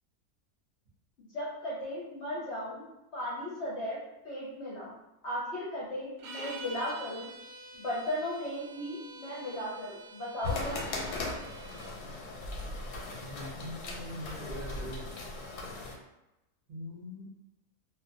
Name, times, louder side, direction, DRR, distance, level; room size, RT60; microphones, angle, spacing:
voice 1, 1.3-2.8 3.1-4.0 4.2-4.9 5.2-7.3 7.7-10.8, left 1 dB, 60° left, -7 dB, 0.8 m, -36 dB
sound 1, 6.2-12.0, right 3 dB, 70° right, 1.0 m, -47 dB
sound 2, 10.4-16.0, left 2 dB, 90° left, 1.1 m, -38 dB
voice 2, 13.2-15.1 16.7-17.3, left 1 dB, 50° right, -10 dB, 0.6 m, -42 dB
2.5 x 2.4 x 2.5 m, 0.93 s
omnidirectional pair, 1.6 m